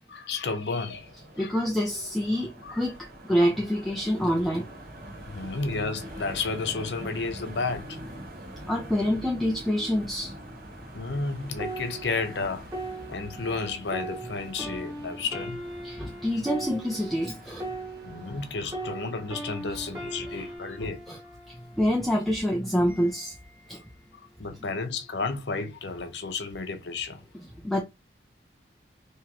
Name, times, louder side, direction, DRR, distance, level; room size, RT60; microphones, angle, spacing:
voice 1, 0.1-1.1 1.4-1.6 2.6-2.8 5.3-8.0 10.9-12.7 13.1-15.6 18.0-21.0 24.1-27.2, left 4 dB, 75° left, 0.7 m, -32 dB
sound 1, 0.8-20.6, right 1 dB, 50° right, 1.0 m, -44 dB
voice 2, 1.4-4.7 8.7-10.3 15.8-17.7 21.1-21.2 21.5-23.3 23.7-23.8 27.6-27.8, equal, ahead, 0.5 m, -26 dB
sound 2, 11.6-18.5 18.7-22.3 22.9-23.2, right 1 dB, 15° right, 1.2 m, -39 dB
3.6 x 3.0 x 2.9 m
head